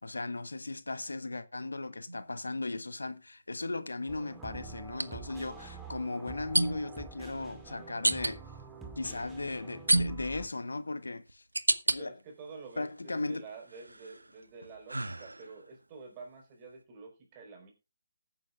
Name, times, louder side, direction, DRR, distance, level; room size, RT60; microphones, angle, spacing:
voice 1, 0.0-8.4 9.0-11.4 11.9-12.2 12.8-13.5, left 2 dB, 75° left, 1.2 m, -37 dB
sound 1, 2.1-2.3 4.9-5.1 6.5-7.0 8.0-8.3 9.9-10.4 11.0-12.0 12.5-13.2 13.7-15.7, right 2 dB, 85° right, 0.9 m, -30 dB
sound 2, 4.1-10.5, right 4 dB, 5° right, 2.1 m, -47 dB
voice 2, 12.0-17.7, right 4 dB, 25° right, 4.4 m, -49 dB
20.0 x 9.4 x 2.4 m
figure-of-eight pair, 150°, 0 cm